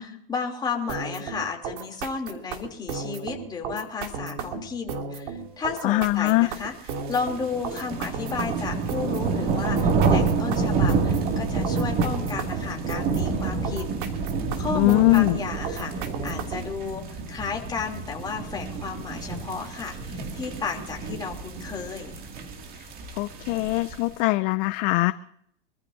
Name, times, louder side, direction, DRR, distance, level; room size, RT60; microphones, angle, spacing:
voice 1, 0.0-6.7 7.1-13.8 14.6-22.2, left 5 dB, 15° left, 0 dB, 3.1 m, -33 dB
sound 1, 0.9-16.7, right 5 dB, 50° right, 2.8 m, -35 dB
voice 2, 5.8-6.5 14.7-15.4 23.2-25.1, left 21 dB, 30° left, 14 dB, 0.5 m, -21 dB
sound 2, 6.6-24.1, right 4 dB, 30° right, 2.4 m, -28 dB
26.0 x 15.0 x 2.7 m, 0.68 s
hypercardioid pair, 140°, 30 cm